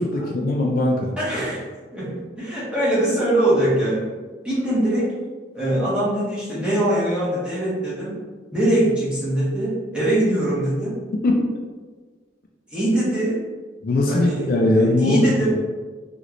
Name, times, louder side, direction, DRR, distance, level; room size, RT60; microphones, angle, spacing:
voice 1, 0.0-1.1 11.2-11.5 13.8-15.4, left 1 dB, 55° left, 0 dB, 0.4 m, -20 dB
voice 2, 1.2-1.6 1.9-4.1 4.4-5.1 5.5-8.1 8.5-11.0 12.7-13.4 14.1-15.6, right 1 dB, 5° right, -9 dB, 1.1 m, -22 dB
3.1 x 2.9 x 2.5 m, 1.4 s
head